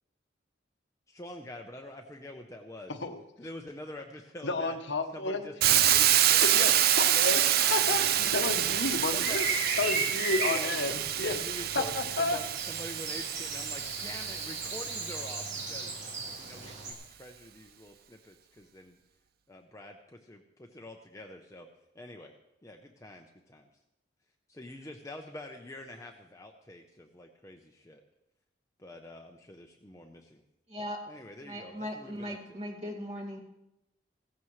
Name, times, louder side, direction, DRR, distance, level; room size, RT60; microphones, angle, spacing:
voice 1, 1.1-2.9 3.4-4.8 5.1-6.5 9.1-9.4 10.4-16.0 16.4-19.0 19.5-21.7 21.9-22.3 22.6-23.7 24.5-28.0 28.8-30.4 30.8-32.6, left 1 dB, 15° left, 2 dB, 0.7 m, -46 dB
voice 2, 4.4-5.5 6.4-9.4 9.8-11.3 11.7-12.4, left 3 dB, 65° left, 6 dB, 1.0 m, -31 dB
Hiss, 5.6-15.5, right 11 dB, 50° right, 0.5 m, -27 dB
sound 1, 7.7-16.9, right 3 dB, 75° right, 2.5 m, -37 dB
voice 3, 30.7-31.0 31.5-33.4, equal, 35° right, -1 dB, 2.1 m, -38 dB
17.0 x 14.5 x 3.2 m, 0.89 s
head